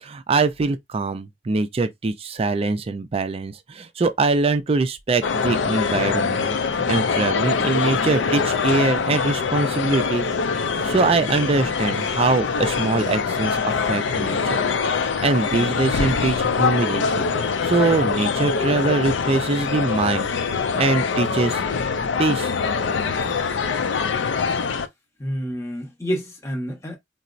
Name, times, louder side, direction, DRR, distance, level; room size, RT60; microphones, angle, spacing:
voice 1, 0.0-10.2 10.8-14.6 15.2-17.2 17.6-20.3 20.8-21.6 22.2-22.5, right 3 dB, 30° right, 0.4 m, -23 dB
sound 1, 5.2-24.9, left 5 dB, 70° left, 0.4 m, -23 dB
voice 2, 25.2-27.0, equal, 15° left, 0.8 m, -29 dB
4.1 x 2.0 x 2.4 m
head